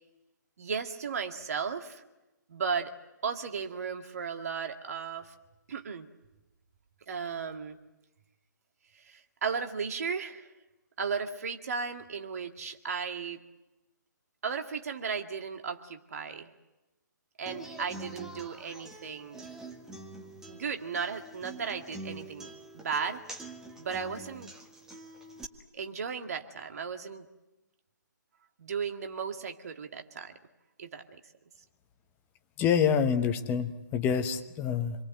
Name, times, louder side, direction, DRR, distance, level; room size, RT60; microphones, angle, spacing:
voice 1, 0.6-2.0 2.5-3.0 3.2-5.3 5.7-6.1 7.1-7.8 8.9-10.5 11.0-13.4 14.4-16.5 17.4-19.4 20.5-23.2 23.8-24.5 25.7-27.3 28.6-30.3 30.8-31.2, right 6 dB, 50° right, 5 dB, 2.2 m, -35 dB
Human voice / Acoustic guitar, 17.5-25.4, right 2 dB, 5° right, 1.5 m, -46 dB
voice 2, 32.6-35.0, left 7 dB, 15° left, 8 dB, 1.2 m, -27 dB
27.0 x 22.5 x 7.9 m, 1.0 s
figure-of-eight pair, 135°, 11 cm